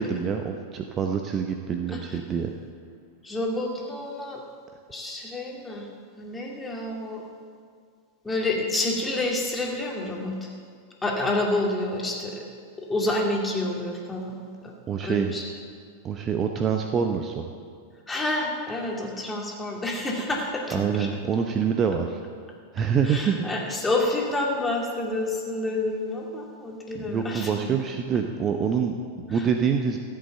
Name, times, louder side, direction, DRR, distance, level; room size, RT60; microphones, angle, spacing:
voice 1, 0.0-2.5 14.9-15.3 16.0-17.5 20.7-22.2 22.7-23.5 26.9-30.0, right 7 dB, 25° right, 5 dB, 0.8 m, -26 dB
voice 2, 3.2-4.4 4.9-5.9 6.2-7.2 8.2-10.5 11.0-12.4 12.8-14.4 14.6-14.7 15.0-15.4 18.1-21.1 23.0-27.5 29.3-29.5, left 2 dB, 10° left, 0 dB, 2.3 m, -28 dB
14.0 x 8.3 x 8.0 m, 2.1 s
figure-of-eight pair, 90°, 0 cm